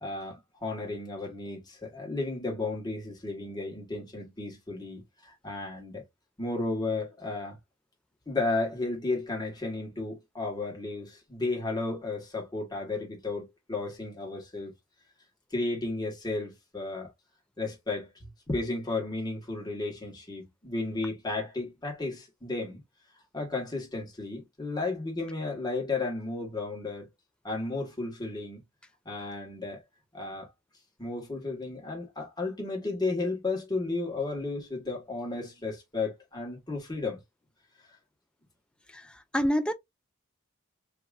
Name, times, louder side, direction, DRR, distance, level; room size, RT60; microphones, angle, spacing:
voice 1, 0.0-6.0 6.4-7.6 8.3-14.7 15.5-17.1 17.6-22.8 23.3-27.1 27.4-28.6 29.0-29.8 30.1-30.5 31.0-37.2, left 3 dB, 20° left, 1.4 m, -33 dB
voice 2, 38.9-39.7, equal, 5° left, 0.3 m, -28 dB
3.5 x 2.9 x 2.4 m
head